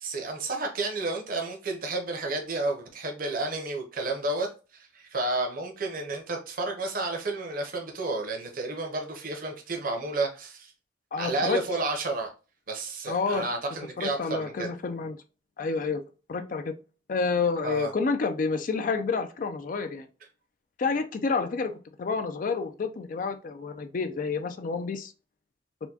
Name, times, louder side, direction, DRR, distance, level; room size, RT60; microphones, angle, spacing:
voice 1, 0.0-10.7 11.2-12.3 12.7-14.7 17.6-17.9, right 2 dB, 50° right, 0.8 m, -31 dB
voice 2, 11.1-11.6 13.1-13.4 14.0-15.2 15.6-16.0 16.3-16.7 17.1-20.1 20.8-25.1, left 4 dB, 50° left, 0.4 m, -29 dB
4.3 x 2.2 x 2.7 m
head